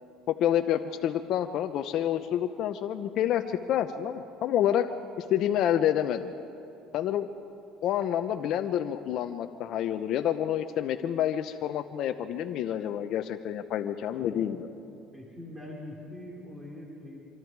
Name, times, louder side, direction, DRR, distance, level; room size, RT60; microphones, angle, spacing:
voice 1, 0.3-4.9 5.2-6.3 6.9-7.3 7.8-14.7, left 10 dB, 60° left, 7 dB, 0.8 m, -28 dB
voice 2, 14.3-14.6 15.0-17.2, left 1 dB, 10° right, -3 dB, 4.2 m, -43 dB
25.5 x 24.5 x 4.8 m, 2.7 s
cardioid pair, 120°, 0 cm